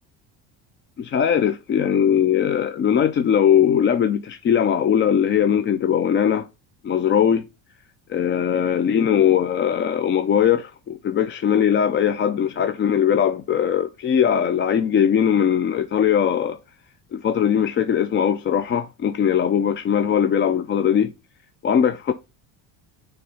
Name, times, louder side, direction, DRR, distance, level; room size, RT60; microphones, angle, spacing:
voice 1, 1.0-6.5 6.8-7.4 8.1-16.6 17.1-21.1 21.6-22.1, left 8 dB, 30° left, 0.3 m, -20 dB
6.5 x 3.5 x 5.5 m
cardioid pair, 130°, 42 cm